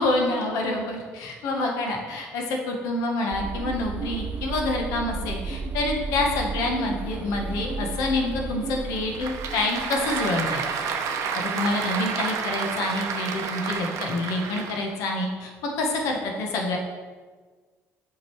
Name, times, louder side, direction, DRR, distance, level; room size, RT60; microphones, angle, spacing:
voice 1, 0.0-10.7 11.5-15.5 15.8-16.8, left 2 dB, 90° left, 1 dB, 1.2 m, -27 dB
sound 1, 3.3-10.7, right 4 dB, 35° right, 0.3 m, -33 dB
Applause / Crowd, 8.8-14.9, right 6 dB, 65° right, 0.7 m, -30 dB
8.3 x 5.1 x 3.1 m, 1.5 s
cardioid pair, 120°, 6 cm